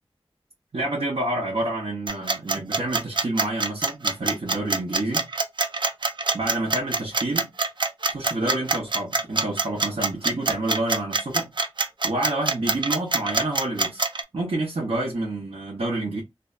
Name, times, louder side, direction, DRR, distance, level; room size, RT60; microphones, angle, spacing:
voice 1, 0.7-5.3 6.3-7.5 8.1-11.5 12.0-14.0 14.3-16.2, right 2 dB, 75° right, 0.8 m, -28 dB
sound 1, 2.1-14.2, right 3 dB, 50° right, 0.4 m, -24 dB
2.6 x 2.2 x 2.4 m
wide cardioid pair, 50°, 10 cm